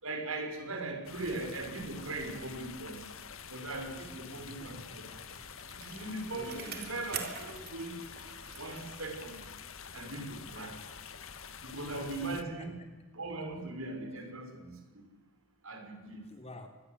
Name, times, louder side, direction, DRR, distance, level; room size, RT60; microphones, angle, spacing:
voice 1, 0.0-3.0 3.5-5.1 5.6-8.0 8.6-9.4 9.9-10.7 11.6-12.8 13.1-15.0 15.6-16.2, right 2 dB, 85° right, 5 dB, 5.7 m, -39 dB
sound 1, 1.0-12.4, left 6 dB, 75° left, 1.7 m, -47 dB
voice 2, 4.0-5.7 6.3-6.8 11.7-12.0 12.3-12.9 16.3-16.7, left 2 dB, 30° left, 4 dB, 3.6 m, -51 dB
Bicycle, 4.8-9.7 10.1-10.2, right 7 dB, 50° right, 3.7 m, -46 dB
25.5 x 21.0 x 8.2 m, 1.2 s
head